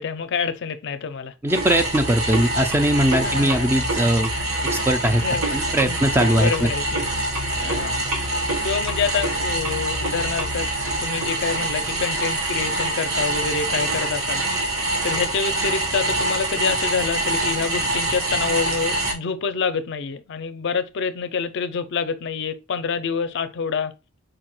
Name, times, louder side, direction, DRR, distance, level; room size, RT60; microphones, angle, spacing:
voice 1, 0.0-1.3 3.2-3.7 5.2-5.4 5.8-6.0 6.3-7.0 7.6-8.0 8.6-10.7 11.0-14.4 15.0-23.9, left 5 dB, 60° left, 0.4 m, -27 dB
voice 2, 1.4-4.3 4.6-5.2 5.5-6.7, right 1 dB, 10° right, 0.3 m, -20 dB
sound 1, 1.5-19.1, right 2 dB, 85° right, 1.2 m, -25 dB
4.8 x 2.2 x 2.9 m
head